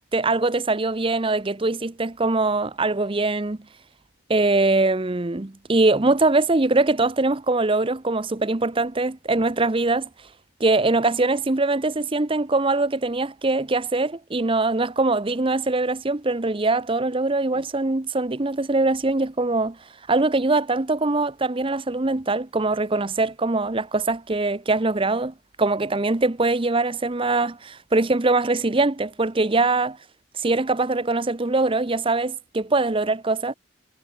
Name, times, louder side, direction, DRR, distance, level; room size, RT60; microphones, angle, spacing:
voice 1, 0.1-3.6 4.3-10.1 10.6-19.8 20.1-30.0 30.3-33.5, right 2 dB, 25° right, 0.7 m, -22 dB
head